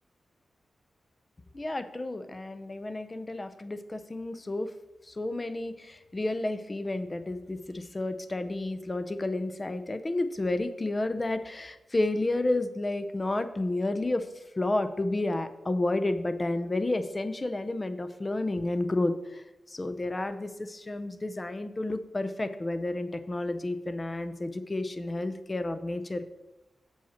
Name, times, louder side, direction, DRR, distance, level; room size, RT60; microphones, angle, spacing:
voice 1, 1.5-4.7 5.1-14.3 14.6-26.2, left 2 dB, 25° left, 10 dB, 0.6 m, -31 dB
7.5 x 7.2 x 4.3 m, 1.0 s
wide cardioid pair, 110°, 0 cm